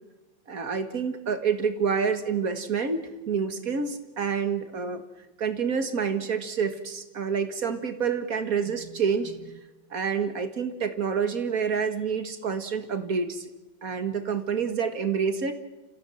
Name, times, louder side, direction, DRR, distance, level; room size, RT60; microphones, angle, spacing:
voice 1, 0.5-5.0 5.4-9.6 9.9-13.5 13.8-15.5, right 6 dB, 50° right, 8 dB, 2.0 m, -28 dB
30.0 x 15.5 x 7.8 m, 1.1 s
omnidirectional pair, 2.0 m